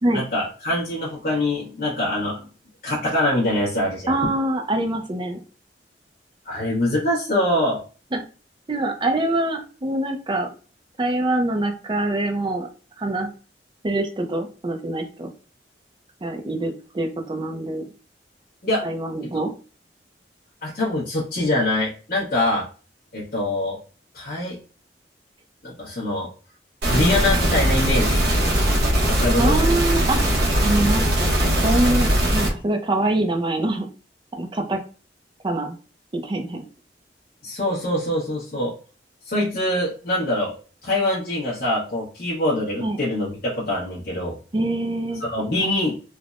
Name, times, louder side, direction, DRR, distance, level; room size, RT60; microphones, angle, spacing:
voice 1, 0.1-2.5 2.8-4.1 6.4-7.8 18.6-18.8 19.3-19.4 20.6-22.7 23.1-23.8 24.1-24.6 25.6-26.3 26.8-28.2 29.1-29.6 37.4-38.7 39.3-40.5 40.8-44.4 45.2-46.0, left 1 dB, 55° left, -7 dB, 1.0 m, -24 dB
voice 2, 4.1-5.4 8.1-8.2 8.7-10.5 11.0-12.7 13.0-13.3 13.8-15.3 16.2-17.9 18.8-19.5 29.4-30.2 30.6-33.9 34.4-34.8 35.4-35.8 36.1-36.6 42.8-43.0 44.5-45.2, right 2 dB, 25° right, 4 dB, 0.5 m, -24 dB
sound 1, 26.8-32.5, equal, 65° right, 0.9 m, -20 dB
3.3 x 2.1 x 2.4 m, 0.36 s
head